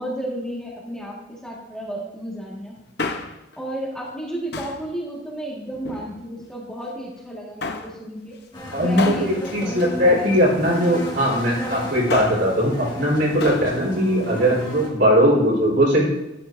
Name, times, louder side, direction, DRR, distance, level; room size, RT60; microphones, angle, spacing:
voice 1, 0.0-2.8 3.6-8.4 8.8-10.5 14.3-14.6, right 1 dB, 5° left, -5 dB, 1.7 m, -32 dB
Male speech man speaking, 2.8-3.6 4.5-4.9 5.7-6.5 7.6-8.0 9.0-10.6 11.9-12.5 13.4-13.7 14.0-14.1, left 3 dB, 60° left, 0.8 m, -31 dB
sound 1, 8.5-14.9, equal, 25° left, 2.0 m, -35 dB
voice 2, 8.7-16.1, equal, 60° right, -4 dB, 4.4 m, -19 dB
12.5 x 11.5 x 2.6 m, 0.90 s
head